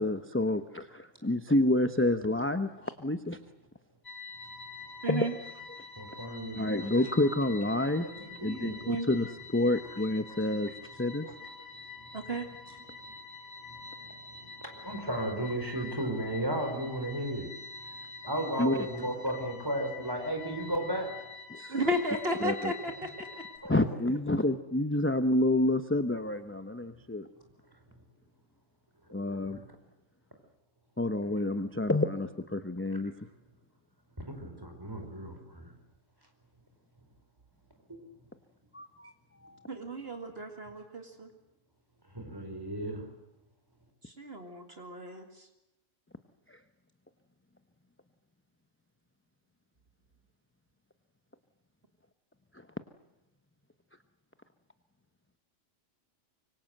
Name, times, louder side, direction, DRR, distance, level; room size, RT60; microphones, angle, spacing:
voice 1, 0.0-3.4 5.1-5.3 5.7-5.8 6.5-8.1 8.4-10.7 11.0-11.3 18.6-18.8 21.5-21.8 22.4-22.7 23.7-27.3 29.1-29.6 31.0-33.3 38.7-39.1 39.4-39.7 46.5-46.6 52.5-52.7, left 1 dB, 10° left, 9 dB, 0.9 m, -29 dB
sound 1, 4.0-23.6, left 5 dB, 55° left, 6.0 m, -47 dB
voice 2, 5.0-5.3 8.9-9.1 11.2-11.3 12.1-12.5 21.7-23.3 39.7-41.3 44.0-45.5, equal, 50° right, 5 dB, 2.4 m, -34 dB
voice 3, 6.0-7.1 8.0-8.8 10.4-10.5 12.0-12.4 12.7-13.1 13.6-21.2 23.6-23.7 29.4-29.7 34.2-35.7 37.9-38.0 42.1-43.1, right 1 dB, 15° right, 4 dB, 4.9 m, -36 dB
25.0 x 24.5 x 7.9 m, 0.94 s
omnidirectional pair, 1.3 m